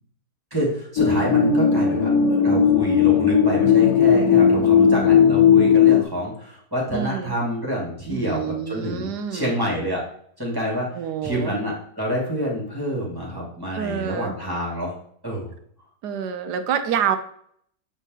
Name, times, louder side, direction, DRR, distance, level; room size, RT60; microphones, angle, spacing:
voice 1, 0.5-10.0 10.4-14.9 15.2-15.5, equal, 15° right, -4 dB, 2.1 m, -28 dB
sound 1, 1.0-6.0, left 7 dB, 65° left, 1.2 m, -16 dB
voice 2, 6.9-7.3 8.1-9.5 11.0-11.6 13.7-14.3 16.0-17.2, right 8 dB, 75° right, 10 dB, 1.3 m, -27 dB
8.1 x 4.2 x 3.8 m, 0.64 s
omnidirectional pair, 1.8 m